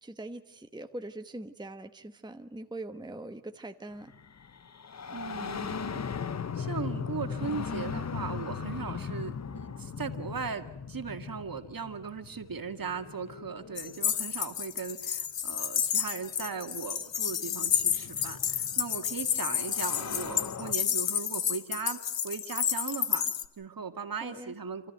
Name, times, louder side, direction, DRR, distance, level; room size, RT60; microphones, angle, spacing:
voice 1, 0.0-4.1 24.2-24.5, right 1 dB, 10° right, 7 dB, 1.1 m, -42 dB
sound 1, 4.0-14.6 15.9-16.0 17.0-20.7, left 6 dB, 35° left, 0.8 m, -39 dB
voice 2, 5.1-6.0 6.5-22.0 22.2-24.9, right 5 dB, 45° right, 7 dB, 2.1 m, -38 dB
sound 2, 13.8-23.4, left 8 dB, 65° left, 1.2 m, -30 dB
28.5 x 14.0 x 9.3 m, 0.85 s
cardioid pair, 65°, 48 cm